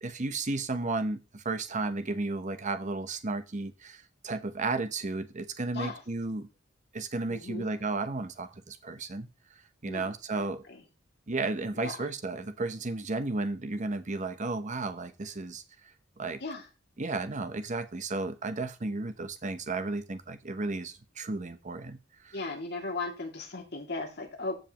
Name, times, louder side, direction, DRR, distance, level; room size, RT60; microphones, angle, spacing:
voice 1, 0.0-6.5 6.9-9.3 9.8-10.6 11.3-15.6 16.2-16.4 17.0-22.0 22.2-22.3, right 3 dB, 40° right, 10 dB, 0.8 m, -33 dB
voice 2, 7.3-7.7 9.8-10.8 11.7-12.1 16.4-16.7 22.3-24.5, left 3 dB, 60° left, 1 dB, 2.5 m, -37 dB
14.5 x 5.3 x 3.0 m, 0.28 s
head